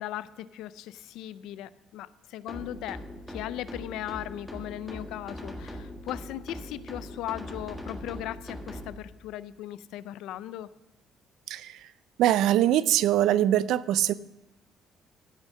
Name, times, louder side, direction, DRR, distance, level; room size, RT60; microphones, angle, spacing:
voice 1, 0.0-3.0 3.3-10.7, left 13 dB, 85° left, 16 dB, 0.5 m, -38 dB
sound 1, 2.5-8.9, left 1 dB, 5° left, 1.6 m, -41 dB
voice 2, 11.5-11.9 12.2-14.1, right 12 dB, 75° right, 17 dB, 0.4 m, -23 dB
15.5 x 6.4 x 6.3 m, 0.94 s
cardioid pair, 135°, 0 cm